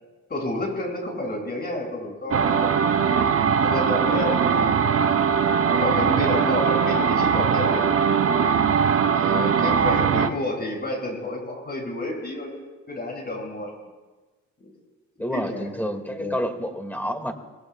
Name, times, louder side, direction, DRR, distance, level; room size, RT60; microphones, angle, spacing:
voice 1, 0.3-3.1 3.6-4.8 5.7-7.8 9.2-13.7 15.3-15.7 16.2-16.4, left 1 dB, 35° left, -1 dB, 6.7 m, -30 dB
sound 1, 2.3-10.3, right 6 dB, 50° right, 0.9 m, -21 dB
voice 2, 15.2-17.3, equal, 5° left, 5 dB, 2.1 m, -29 dB
28.0 x 20.5 x 2.4 m, 1.3 s
cardioid pair, 90°, 30 cm